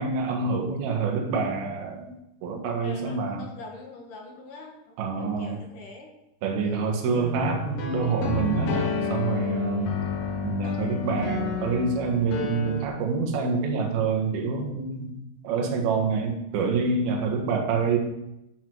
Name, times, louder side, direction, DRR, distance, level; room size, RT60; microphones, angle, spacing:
voice 1, 0.0-2.2 2.4-3.4 5.0-5.6 6.4-9.9 10.4-18.0, right 4 dB, 65° right, 1 dB, 3.3 m, -27 dB
voice 2, 2.8-6.1 6.6-7.3, left 2 dB, 60° left, 1 dB, 2.6 m, -44 dB
sound 1, 7.1-12.9, left 5 dB, 75° left, 1.7 m, -30 dB
12.0 x 8.4 x 4.7 m, 0.87 s
omnidirectional pair, 5.1 m